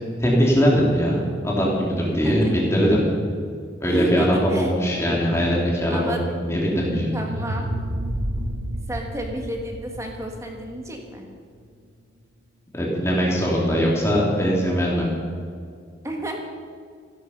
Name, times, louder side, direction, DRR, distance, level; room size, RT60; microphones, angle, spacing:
voice 1, 0.2-3.0 3.8-7.1 12.7-15.1, equal, 15° left, -4 dB, 2.9 m, -21 dB
voice 2, 2.1-2.5 3.8-4.7 5.9-6.2 7.1-7.7 8.9-11.3 16.0-16.3, right 1 dB, 15° right, 2 dB, 1.7 m, -31 dB
sound 1, 6.4-11.4, right 1 dB, 60° right, 1.0 m, -31 dB
16.0 x 11.5 x 5.5 m, 2.2 s
head